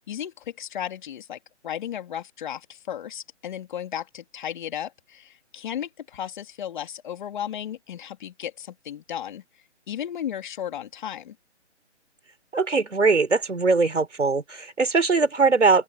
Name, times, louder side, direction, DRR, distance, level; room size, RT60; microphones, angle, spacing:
voice 1, 0.1-1.4 1.6-9.4 9.9-11.4, left 10 dB, 40° left, 2.7 m, -34 dB
voice 2, 12.5-15.8, right 4 dB, 80° right, 4.3 m, -21 dB
open air
figure-of-eight pair, 145°, 35 cm